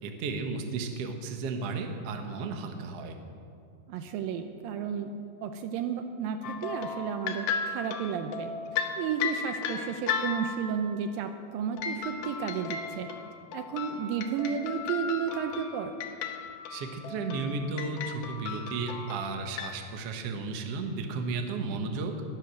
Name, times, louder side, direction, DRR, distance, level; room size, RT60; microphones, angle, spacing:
voice 1, 0.0-3.2 16.7-22.1, right 4 dB, 60° right, 4 dB, 1.7 m, -34 dB
voice 2, 3.9-5.1 5.4-8.5 9.0-13.1 13.5-16.0, right 7 dB, 80° right, 7 dB, 2.3 m, -32 dB
sound 1, 6.4-10.8 11.8-19.8, left 6 dB, 90° left, 2.8 m, -35 dB
21.5 x 7.7 x 6.2 m, 2.3 s
omnidirectional pair, 4.3 m